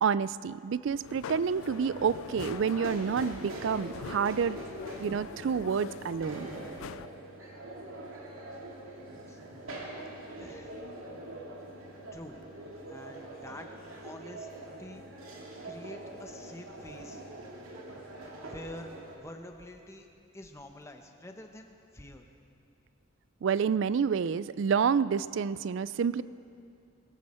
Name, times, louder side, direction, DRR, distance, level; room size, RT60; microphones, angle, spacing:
voice 1, 0.0-4.6 5.0-6.5 23.4-26.2, right 6 dB, 65° right, 17 dB, 0.3 m, -28 dB
sound 1, 1.0-7.1, left 8 dB, 80° left, 0.3 m, -44 dB
sound 2, 1.4-19.2, right 1 dB, 85° right, 2.5 m, -44 dB
voice 2, 10.4-10.9 12.1-12.4 12.9-13.7 14.0-14.5 14.8-15.0 15.6-17.2 18.4-20.1 20.3-22.3, left 1 dB, 15° left, 4 dB, 0.9 m, -47 dB
21.5 x 14.5 x 4.3 m, 2.6 s
head